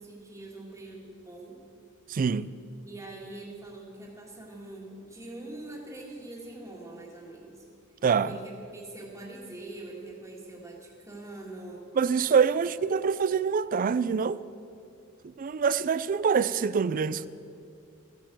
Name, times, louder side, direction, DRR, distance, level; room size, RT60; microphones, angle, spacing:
voice 1, 0.0-1.6 2.9-7.6 8.3-11.9, right 2 dB, 15° right, 1.9 m, -43 dB
voice 2, 2.1-2.5 8.0-8.4 12.0-14.4 15.2-17.3, right 6 dB, 40° right, 0.4 m, -25 dB
14.5 x 9.2 x 7.5 m
head